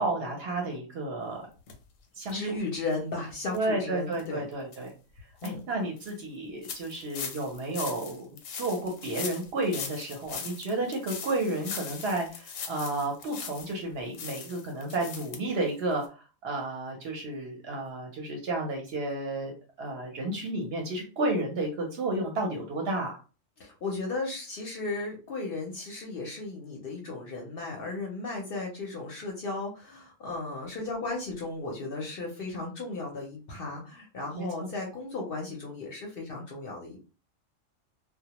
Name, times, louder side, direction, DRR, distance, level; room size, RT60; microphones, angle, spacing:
voice 1, 0.0-1.4 2.2-2.5 3.5-4.9 5.4-23.2 34.3-34.7, right 2 dB, 60° right, 1 dB, 0.7 m, -32 dB
sound 1, 1.7-1.8 2.2-2.3 2.8-2.9 3.5-3.6 4.1-4.3 4.7-4.8 5.2-5.5 6.0-6.1 6.6-13.8 14.1-15.4 15.7-15.8 16.0-16.1, left 6 dB, 85° left, 1.0 m, -40 dB
voice 2, 2.3-4.5 5.4-5.7 23.6-37.0, left 3 dB, 60° left, 0 dB, 0.6 m, -35 dB
2.2 x 2.0 x 2.8 m, 0.35 s
omnidirectional pair, 1.3 m